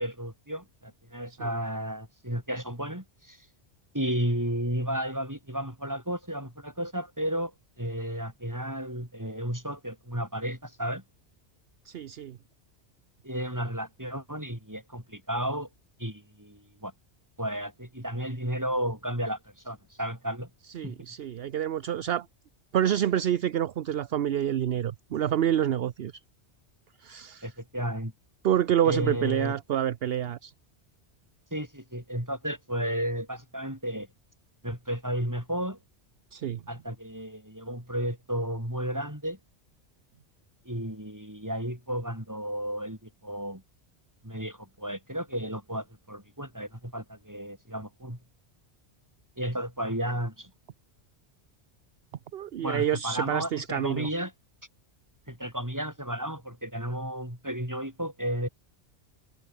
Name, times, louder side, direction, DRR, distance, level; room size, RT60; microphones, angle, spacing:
voice 1, 0.0-3.4 3.9-7.5 7.8-11.0 13.2-15.7 16.0-16.9 17.4-19.4 19.6-20.5 20.8-21.0 27.4-28.1 28.8-29.6 31.5-34.1 34.6-35.8 36.7-39.4 40.6-43.6 44.2-48.2 49.4-50.5 52.6-54.3 55.3-58.5, equal, 15° right, 6.2 m, -33 dB
voice 2, 11.9-12.4 20.7-22.3 22.7-26.1 27.0-27.5 28.4-30.5 36.3-36.6 52.3-54.1, right 10 dB, 65° right, 0.9 m, -27 dB
omnidirectional pair, 1.2 m